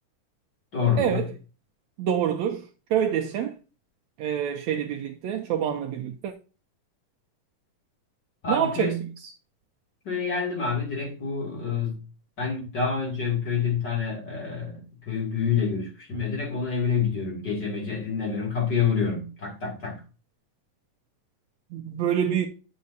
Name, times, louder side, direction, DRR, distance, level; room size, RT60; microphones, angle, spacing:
voice 1, 0.7-1.2 8.4-9.0 10.0-12.0 12.4-14.8 15.1-20.0, left 6 dB, 35° left, 2.9 m, -27 dB
voice 2, 2.0-3.5 4.2-6.3 8.5-8.9 9.2-9.3 21.7-22.5, right 9 dB, 75° right, 1.7 m, -26 dB
10.5 x 7.4 x 2.7 m
omnidirectional pair, 3.8 m